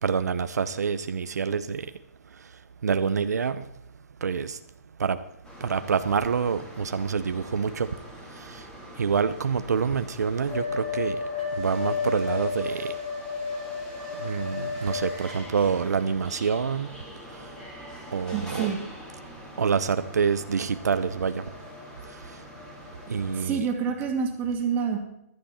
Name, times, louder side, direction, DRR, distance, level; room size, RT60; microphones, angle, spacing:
voice 1, 0.0-1.9 2.8-3.6 4.2-4.6 5.0-5.2 5.6-7.9 8.4-8.7 9.0-11.2 11.6-12.9 14.2-16.9 18.1-18.7 19.6-21.4 23.1-23.7, right 6 dB, 80° right, 11 dB, 0.8 m, -27 dB
sound 1, 5.5-23.5, left 4 dB, 10° left, 3.2 m, -36 dB
voice 2, 18.3-18.8 23.4-25.0, right 6 dB, 20° right, 2 dB, 2.3 m, -27 dB
15.5 x 12.0 x 4.3 m, 0.81 s
hypercardioid pair, 150°, 9 cm